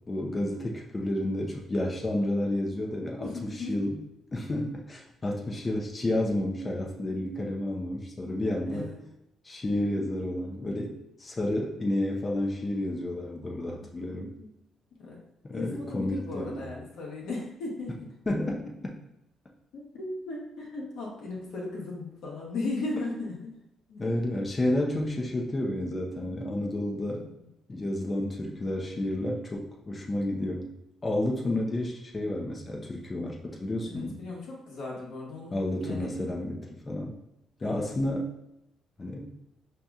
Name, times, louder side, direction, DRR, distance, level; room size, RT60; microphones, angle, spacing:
voice 1, 0.0-4.0 4.3-8.9 9.4-14.3 15.4-16.7 18.3-18.9 24.0-27.2 27.7-30.7 31.0-34.2 35.5-37.2 37.6-38.3 39.0-39.3, left 1 dB, 30° left, -1 dB, 0.6 m, -31 dB
voice 2, 2.9-3.7 8.6-9.0 13.7-13.9 14.4-14.5 15.0-15.2 15.5-18.0 19.7-23.5 23.9-24.0 27.4-27.5 32.2-32.3 33.9-36.1 37.6-37.9, left 2 dB, 80° left, -3 dB, 1.1 m, -37 dB
4.9 x 2.8 x 2.4 m, 0.87 s
cardioid pair, 75°, 0 cm